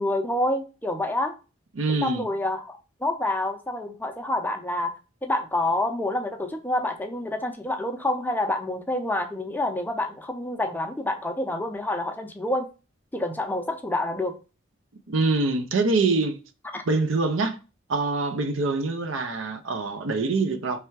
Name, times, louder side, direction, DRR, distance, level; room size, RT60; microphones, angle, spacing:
voice 1, 0.0-1.4 2.0-5.0 5.2-12.7 13.1-14.3 16.7-16.8, left 1 dB, 10° left, 0.5 m, -28 dB
voice 2, 1.7-2.3 15.1-16.4 16.9-17.6 17.9-20.8, right 3 dB, 70° right, 0.6 m, -24 dB
3.4 x 3.3 x 4.6 m
head